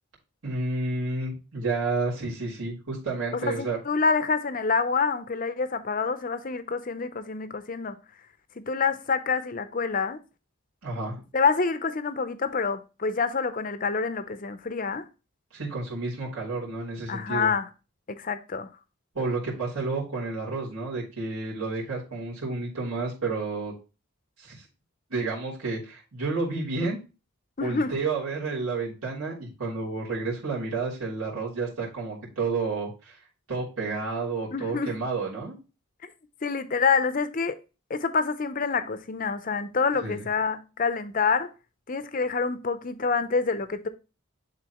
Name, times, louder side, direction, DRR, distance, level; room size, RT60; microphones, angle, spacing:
voice 1, 0.4-3.8 10.8-11.2 15.5-17.5 19.1-23.7 24.4-24.6 25.1-27.0 27.6-33.2 33.5-35.5 40.0-40.2, right 3 dB, 85° right, 3.2 m, -30 dB
voice 2, 3.3-8.0 8.6-10.2 11.3-15.0 17.1-17.7 18.1-18.7 27.6-27.9 34.5-34.9 36.4-37.6 37.9-41.5 41.9-43.9, left 5 dB, 40° left, 0.6 m, -27 dB
10.5 x 3.9 x 2.9 m
head